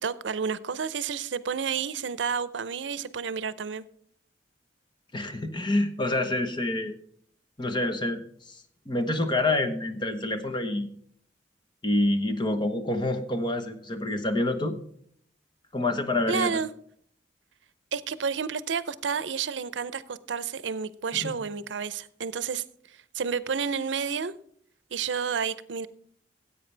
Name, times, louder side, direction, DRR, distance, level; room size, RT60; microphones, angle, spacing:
voice 1, 0.0-3.8 16.3-16.7 17.9-22.6 23.1-24.3 24.9-25.9, right 6 dB, 90° right, 0.6 m, -30 dB
voice 2, 5.1-6.9 7.6-8.2 8.5-8.6 8.9-11.0 11.8-14.8 15.7-16.5 21.1-21.4, left 2 dB, 25° left, 1.1 m, -27 dB
15.5 x 8.4 x 3.3 m
head